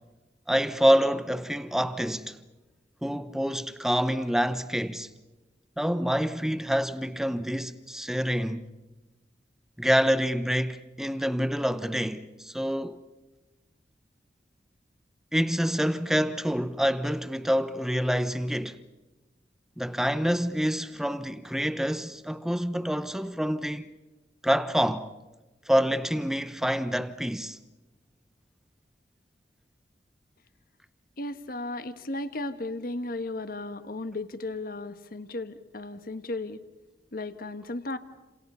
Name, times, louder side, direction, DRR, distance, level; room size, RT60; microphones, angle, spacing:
voice 1, 0.5-2.4 3.0-5.1 5.8-8.7 9.8-13.0 15.3-18.8 19.8-23.9 24.4-25.1 25.7-27.6, equal, 5° right, 0.9 m, -27 dB
voice 2, 31.2-36.6 37.1-38.0, left 2 dB, 55° left, 1.4 m, -35 dB
29.5 x 27.5 x 5.6 m
head